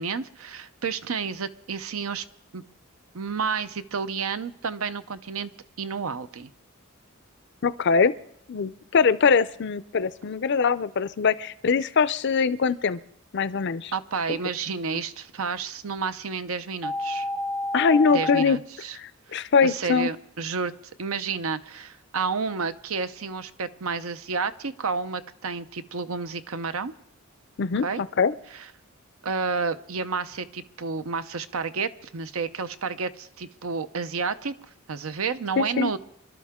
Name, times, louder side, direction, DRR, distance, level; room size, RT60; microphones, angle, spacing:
voice 1, 0.0-2.2 2.5-2.6 3.1-5.5 5.8-6.5 13.9-17.3 18.1-19.0 19.3-20.7 21.0-26.9 27.8-28.0 28.5-28.6 29.2-34.5 34.9-36.0, right 5 dB, 75° right, 12 dB, 0.7 m, -30 dB
voice 2, 7.6-8.1 8.5-13.0 13.3-13.9 17.7-18.6 19.0-20.1 27.6-28.3 35.6-35.9, left 5 dB, 55° left, 16 dB, 0.5 m, -22 dB
sound 1, 16.8-18.4, left 1 dB, ahead, 0.5 m, -29 dB
26.5 x 12.0 x 3.6 m, 0.72 s
head